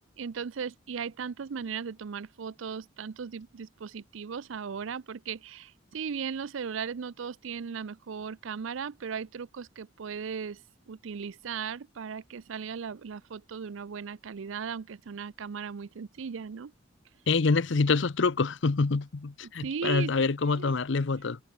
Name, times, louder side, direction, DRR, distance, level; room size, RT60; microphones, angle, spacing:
voice 1, 0.2-10.6 10.9-16.7 19.4-20.3 20.6-20.8, right 6 dB, 75° right, 0.5 m, -37 dB
voice 2, 17.3-21.4, left 4 dB, 65° left, 0.7 m, -26 dB
head